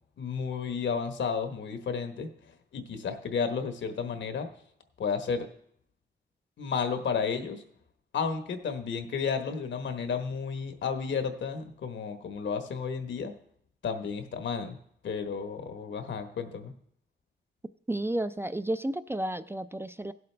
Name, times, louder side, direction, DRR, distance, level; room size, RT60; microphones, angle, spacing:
voice 1, 0.2-2.3 2.7-4.5 5.0-5.5 6.6-7.6 8.1-13.3 13.8-14.8 15.0-16.7, left 6 dB, 80° left, 7 dB, 1.2 m, -32 dB
voice 2, 17.9-20.1, right 1 dB, 15° right, 12 dB, 0.3 m, -32 dB
17.0 x 7.8 x 3.3 m, 0.67 s
cardioid pair, 100°, 19 cm